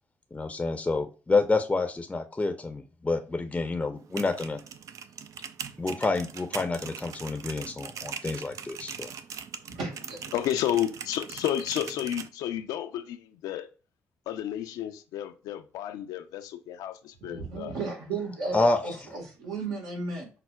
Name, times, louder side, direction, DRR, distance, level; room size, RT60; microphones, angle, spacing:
voice 1, 0.3-4.6 5.8-9.1 18.5-18.8, left 3 dB, 20° left, 0.5 m, -28 dB
sound 1, 4.0-12.3, right 7 dB, 60° right, 0.3 m, -41 dB
voice 2, 9.7-10.2 17.2-18.6 18.8-20.3, right 3 dB, 80° right, 1.3 m, -34 dB
voice 3, 10.3-13.7 14.3-17.8, left 11 dB, 75° left, 0.4 m, -31 dB
5.6 x 2.0 x 2.2 m
hypercardioid pair, 50°, 6 cm